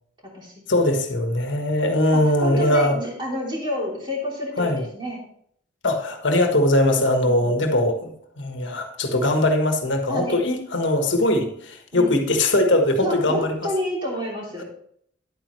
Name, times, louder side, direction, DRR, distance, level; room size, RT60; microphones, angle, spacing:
voice 1, 0.7-3.0 4.6-4.8 5.8-13.5, left 1 dB, 85° left, 4 dB, 1.4 m, -21 dB
voice 2, 2.1-5.2 6.9-7.7 10.1-10.5 11.9-12.1 13.0-14.6, equal, 25° right, -3 dB, 3.1 m, -29 dB
10.5 x 8.8 x 3.1 m, 0.66 s
head